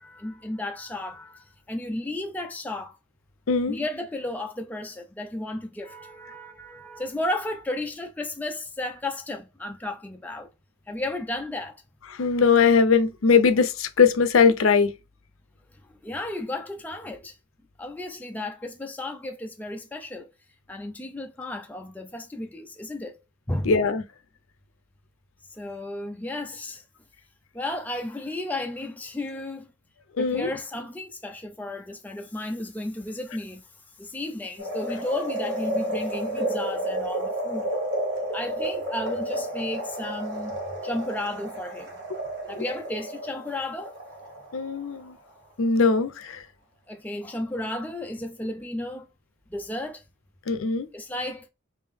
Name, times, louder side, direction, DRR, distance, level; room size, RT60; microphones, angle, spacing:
voice 1, 0.0-3.0 3.7-10.5 10.9-11.8 15.9-17.4 17.8-20.3 20.7-23.2 23.5-23.8 25.5-26.8 27.5-29.7 30.2-33.7 34.0-37.7 38.3-40.6 40.8-41.9 42.5-43.9 46.9-49.1 49.5-50.0 50.9-51.5, left 1 dB, 10° left, 0.4 m, -33 dB
voice 2, 3.5-3.8 12.1-14.9 23.6-24.0 30.2-30.5 44.5-45.2 45.6-46.4 50.5-50.9, left 5 dB, 85° left, 0.6 m, -20 dB
sound 1, 34.6-44.9 45.3-45.4, right 1 dB, 60° right, 1.8 m, -31 dB
3.5 x 2.7 x 3.5 m
head